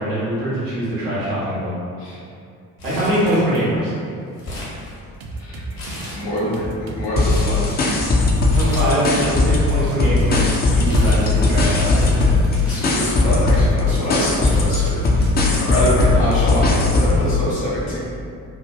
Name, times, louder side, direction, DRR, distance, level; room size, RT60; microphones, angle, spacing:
voice 1, 0.0-1.7 2.8-3.9 8.4-12.1, right 1 dB, 85° right, -9 dB, 0.9 m, -22 dB
Crumpling crinkling, 2.8-3.8 4.1-5.3 5.7-6.6 7.0-7.6 8.4-9.2 9.5-13.5 14.1-14.2 14.5-15.5 15.8-15.9 16.9-17.2, left 1 dB, 50° left, 1.1 m, -36 dB
sound 1, 5.2-15.7, right 2 dB, 50° right, 0.5 m, -34 dB
voice 2, 6.1-7.7 12.1-12.3 12.6-15.0 15.6-18.0, equal, 75° left, -10 dB, 0.9 m, -24 dB
sound 2, 7.2-9.7 10.0-17.2, left 2 dB, 25° left, 0.4 m, -17 dB
2.6 x 2.2 x 2.6 m, 2.4 s
figure-of-eight pair, 40°, 47 cm